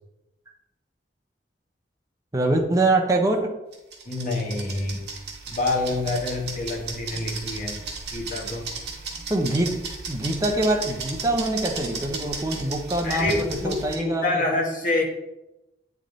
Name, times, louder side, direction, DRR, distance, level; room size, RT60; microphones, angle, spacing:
voice 1, 2.3-3.6 9.3-14.4, right 2 dB, 20° right, 2 dB, 0.7 m, -24 dB
sound 1, 3.7-13.9, right 4 dB, 65° right, 1.5 m, -35 dB
voice 2, 4.1-5.0 5.5-7.8 8.1-8.7 13.0-15.0, left 2 dB, 50° left, 0 dB, 1.3 m, -27 dB
8.7 x 3.6 x 3.8 m, 0.94 s
head